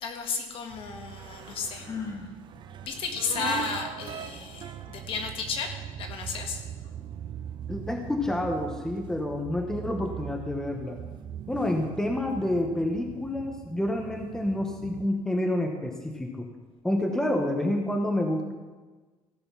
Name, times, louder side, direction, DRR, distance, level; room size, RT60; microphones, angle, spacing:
voice 1, 0.0-1.9 2.8-6.6, left 5 dB, 55° left, 4 dB, 1.6 m, -33 dB
sound 1, 0.7-15.1, right 9 dB, 45° right, 0.5 m, -40 dB
Sigh, 1.7-2.3, left 5 dB, 30° left, 1.2 m, -36 dB
voice 2, 7.7-11.0 11.5-16.5 16.8-18.5, left 1 dB, 5° left, 3 dB, 1.0 m, -28 dB
15.5 x 6.6 x 5.8 m, 1.3 s
cardioid pair, 160°, 11 cm